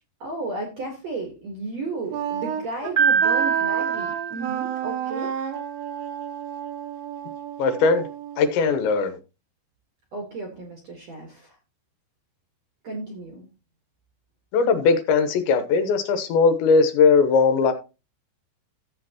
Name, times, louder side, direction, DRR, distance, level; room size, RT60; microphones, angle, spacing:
voice 1, 0.2-5.3 10.1-11.6 12.8-13.5, right 2 dB, 55° right, 1.9 m, -33 dB
Wind instrument woodwind instrument, 2.1-9.0, right 9 dB, 75° right, 2.8 m, -31 dB
Piano, 3.0-5.0, right 6 dB, 35° right, 1.2 m, -24 dB
voice 2, 7.6-8.1 8.4-9.2 14.5-17.7, left 5 dB, 80° left, 3.3 m, -19 dB
14.0 x 7.6 x 2.9 m
omnidirectional pair, 5.2 m